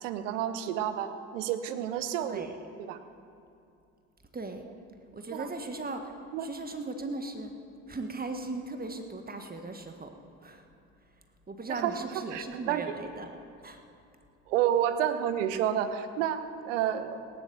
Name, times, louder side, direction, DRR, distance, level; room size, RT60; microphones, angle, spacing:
voice 1, 0.0-2.5 2.8-3.0 5.3-5.5 6.3-6.5 11.7-12.9 14.5-17.2, right 10 dB, 80° right, 10 dB, 1.1 m, -30 dB
voice 2, 5.1-6.1 6.4-7.5 7.9-10.1 10.4-10.7 11.5-13.3 13.6-13.8, right 3 dB, 25° right, 6 dB, 1.6 m, -38 dB
17.0 x 10.5 x 7.1 m, 2.6 s
hypercardioid pair, 60°, 37 cm